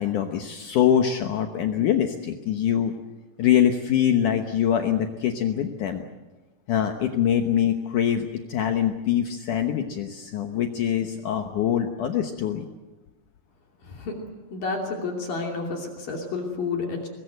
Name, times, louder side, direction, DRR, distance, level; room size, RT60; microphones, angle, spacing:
voice 1, 0.0-2.9 3.4-6.1 6.7-12.7, left 9 dB, 85° left, 5 dB, 1.7 m, -24 dB
voice 2, 13.8-14.2 14.5-17.1, left 4 dB, 50° left, 1 dB, 4.1 m, -30 dB
24.0 x 21.0 x 7.9 m, 1.2 s
omnidirectional pair, 5.4 m